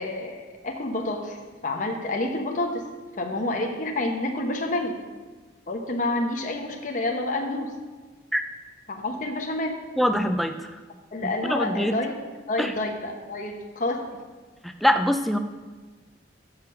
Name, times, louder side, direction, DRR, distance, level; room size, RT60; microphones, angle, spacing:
voice 1, 0.0-2.9 3.2-5.0 5.7-7.7 8.9-9.8 11.1-12.1 12.5-14.1, left 2 dB, 45° left, 2 dB, 0.9 m, -28 dB
voice 2, 10.0-10.8 11.2-12.0 12.6-12.7 14.6-15.4, equal, ahead, 7 dB, 0.4 m, -24 dB
6.8 x 5.6 x 6.8 m, 1.3 s
head